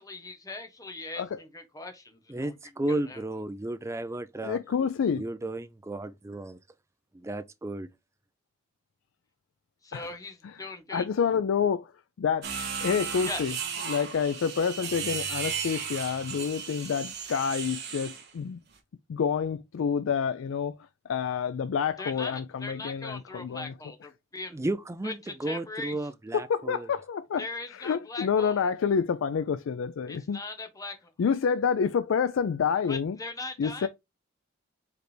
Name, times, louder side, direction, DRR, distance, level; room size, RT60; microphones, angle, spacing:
voice 1, 0.0-2.5 2.9-3.2 9.8-11.1 13.2-13.6 22.0-24.6 25.0-25.9 27.4-28.7 30.1-31.1 32.9-33.9, left 3 dB, 15° left, 0.8 m, -40 dB
voice 2, 2.3-4.6 5.1-6.6 7.3-7.9 24.5-26.9, right 2 dB, 15° right, 0.3 m, -33 dB
voice 3, 4.4-5.2 9.9-10.2 10.4-10.6 10.9-11.9 12.2-12.5 12.8-13.6 13.9-18.6 19.1-20.7 21.1-23.8 24.0-24.1 26.3-30.4 31.2-33.2 33.6-33.9, left 6 dB, 65° left, 0.3 m, -28 dB
sound 1, 12.4-18.3, right 6 dB, 50° right, 1.1 m, -35 dB
4.9 x 3.3 x 3.1 m
head